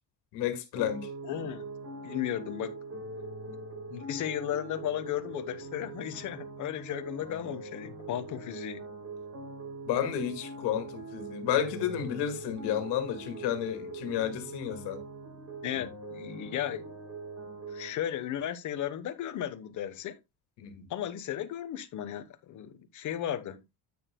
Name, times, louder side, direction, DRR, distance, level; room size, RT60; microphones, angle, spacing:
voice 1, 0.3-1.1 9.9-15.0 15.8-15.9 20.6-20.9, left 10 dB, 80° left, 2.1 m, -31 dB
sound 1, 0.8-17.9, right 2 dB, 40° right, 4.3 m, -42 dB
voice 2, 1.2-1.7 2.0-2.8 3.9-8.8 15.6-16.9 17.7-20.2 20.9-23.6, left 11 dB, 45° left, 1.1 m, -35 dB
9.7 x 8.8 x 2.2 m
cardioid pair, 160°, 40 cm